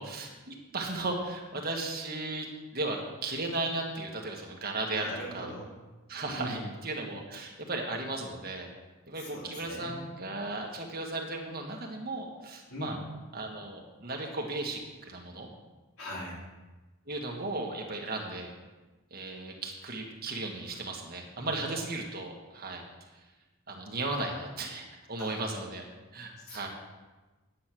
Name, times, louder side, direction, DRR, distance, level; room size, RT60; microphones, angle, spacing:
voice 1, 0.0-2.5 2.7-5.5 6.1-8.7 9.1-13.0 13.3-14.8 15.1-15.5 17.1-18.5 19.1-22.8 23.7-25.9 26.1-26.7, right 2 dB, 45° right, 0 dB, 1.7 m, -36 dB
voice 2, 4.9-5.8 6.3-6.7 9.2-10.1 12.7-13.0 16.0-16.4 21.4-21.5 25.2-25.3 26.4-26.7, equal, 75° left, -4 dB, 3.5 m, -40 dB
9.3 x 8.6 x 6.2 m, 1.2 s
head